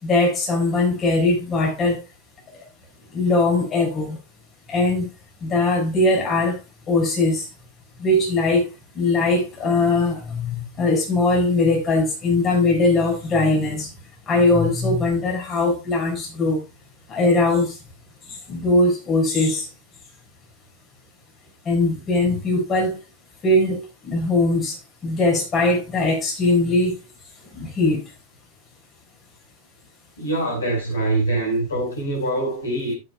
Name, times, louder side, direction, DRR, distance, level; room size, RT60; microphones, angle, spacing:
voice 1, 0.0-2.0 3.1-4.2 4.7-5.1 5.4-6.6 6.9-7.5 8.0-8.7 8.9-13.9 14.3-16.6 17.1-17.8 18.5-19.7 21.6-23.0 23.4-26.9 27.5-28.0, left 2 dB, 25° left, 6.1 m, -20 dB
voice 2, 30.2-32.9, right 2 dB, 70° left, 5.5 m, -24 dB
15.0 x 8.7 x 2.4 m
figure-of-eight pair, 90°, 0 cm